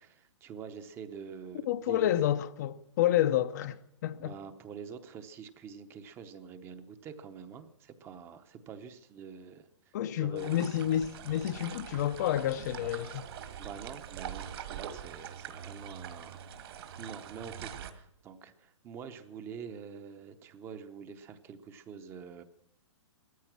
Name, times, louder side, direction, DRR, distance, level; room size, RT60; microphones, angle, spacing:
voice 1, 0.0-2.3 4.2-10.7 13.6-22.4, right 6 dB, 15° right, 0.8 m, -46 dB
voice 2, 1.7-4.3 9.9-13.3, left 11 dB, 35° left, 0.6 m, -29 dB
sound 1, 10.4-17.9, right 9 dB, 50° right, 1.8 m, -43 dB
16.5 x 14.0 x 6.0 m
hypercardioid pair, 160°, 16 cm